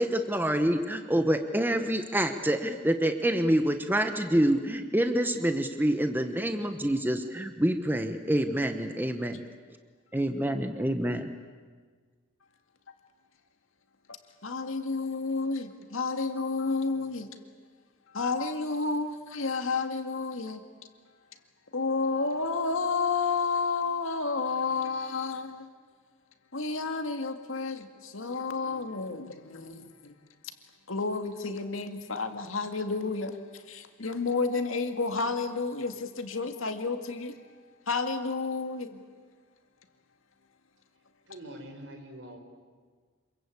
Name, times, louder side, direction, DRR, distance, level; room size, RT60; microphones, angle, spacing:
voice 1, 0.0-9.4 10.1-11.3, right 1 dB, 10° right, 1.1 m, -27 dB
voice 2, 14.4-17.3 18.1-20.6 21.7-25.7 26.5-30.2 30.9-37.4 37.9-39.0, left 4 dB, 90° left, 2.1 m, -31 dB
voice 3, 41.3-42.4, right 1 dB, 65° right, 4.8 m, -44 dB
27.0 x 22.5 x 8.6 m
head